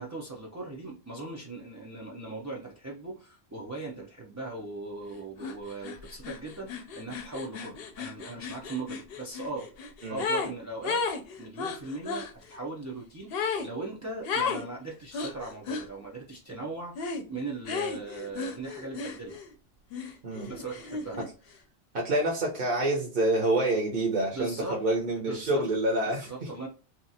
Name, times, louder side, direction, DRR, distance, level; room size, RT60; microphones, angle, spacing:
voice 1, 0.0-9.7 10.1-11.0 11.4-19.4 20.4-21.2 24.3-24.8 25.2-25.6 26.0-26.7, right 3 dB, 30° right, -3 dB, 0.3 m, -39 dB
sound 1, 5.4-5.6 5.8-10.5 10.8-12.3 13.3-13.7 14.3-14.7 15.1-15.9 17.0-17.3 17.7-19.5 19.9-21.3, left 4 dB, 65° left, 0.8 m, -34 dB
voice 2, 21.9-26.3, right 1 dB, 60° right, -2 dB, 1.0 m, -27 dB
2.8 x 2.3 x 2.6 m, 0.35 s
omnidirectional pair, 1.1 m